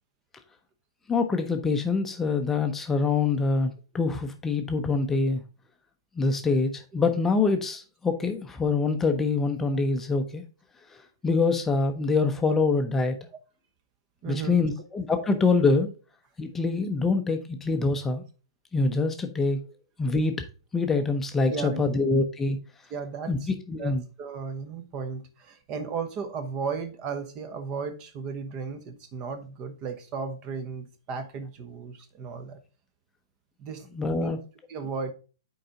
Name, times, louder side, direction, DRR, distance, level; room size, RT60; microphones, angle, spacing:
voice 1, 1.1-5.4 6.2-10.4 11.2-13.2 14.2-15.9 16.4-18.2 18.7-19.6 20.0-20.4 20.7-22.6 23.3-24.0 33.9-34.4, left 4 dB, 10° left, 0.7 m, -25 dB
voice 2, 14.2-14.8 15.2-15.3 17.2-17.3 21.4-22.0 22.9-23.5 23.8-32.6 33.6-34.3 34.7-35.1, right 5 dB, 30° right, 1.0 m, -35 dB
7.6 x 4.7 x 3.8 m
figure-of-eight pair, 110°, 2 cm